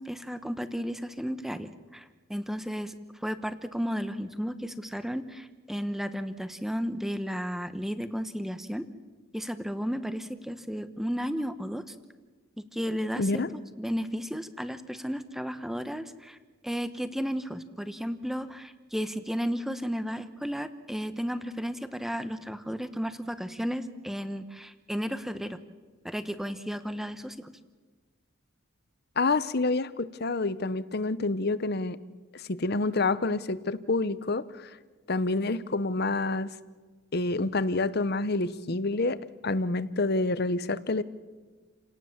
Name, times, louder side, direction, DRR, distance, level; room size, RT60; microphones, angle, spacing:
voice 1, 0.0-8.9 9.3-11.9 12.7-16.4 16.6-25.6 26.0-27.5, equal, ahead, 11 dB, 1.0 m, -33 dB
voice 2, 13.2-13.5 29.2-32.0 32.3-34.7 35.1-36.5 37.1-39.2 39.4-41.0, left 3 dB, 50° left, 16 dB, 0.9 m, -28 dB
29.5 x 18.0 x 7.4 m, 1.4 s
head